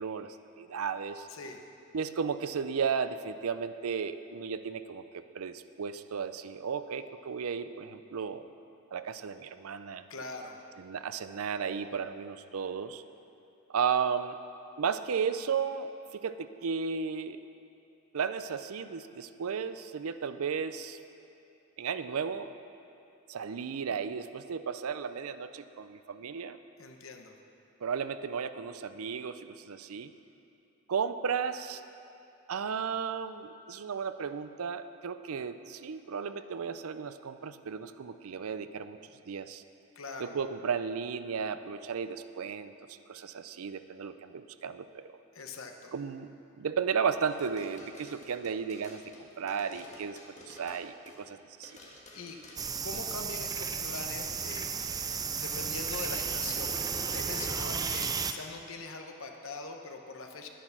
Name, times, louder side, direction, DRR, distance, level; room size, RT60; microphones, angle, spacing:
voice 1, 0.0-1.3 1.9-8.5 8.9-10.0 10.8-13.0 13.7-14.4 14.8-17.4 18.1-21.0 21.8-22.5 23.3-26.6 27.8-30.1 30.9-31.8 32.5-39.0 39.3-39.6 40.2-45.2 45.9-50.2 50.5-51.7, right 6 dB, 85° right, 11 dB, 0.5 m, -34 dB
voice 2, 1.3-1.6 10.1-10.6 26.8-27.4 40.0-40.4 45.3-45.9 52.1-52.4 52.8-54.7 55.3-60.5, left 3 dB, 65° left, 4 dB, 1.0 m, -42 dB
sound 1, 47.3-51.3 51.6-53.1, left 1 dB, 35° left, 1.6 m, -52 dB
sound 2, 52.6-58.3, right 6 dB, 15° right, 0.4 m, -33 dB
11.0 x 10.0 x 5.9 m, 2.8 s
head